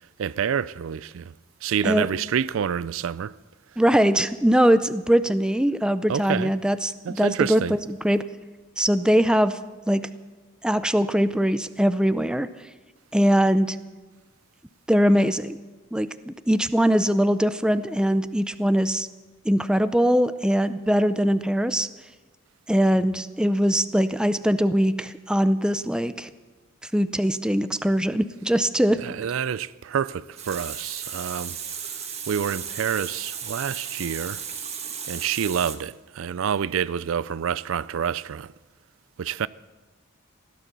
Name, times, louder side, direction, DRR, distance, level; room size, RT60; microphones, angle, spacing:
voice 1, 0.2-1.3 1.6-3.3 6.1-6.5 7.1-7.8 29.0-31.6 32.3-34.4 35.1-38.5 39.2-39.5, right 8 dB, 75° right, 0.4 m, -28 dB
voice 2, 3.8-8.2 8.8-9.6 9.9-10.1 10.6-12.5 13.1-13.8 14.9-15.6 15.9-19.1 19.5-21.9 22.7-26.3 26.9-29.0, equal, 5° right, 0.5 m, -21 dB
Water tap faucet, 30.1-35.8, right 7 dB, 30° right, 1.5 m, -35 dB
16.5 x 11.5 x 6.9 m
head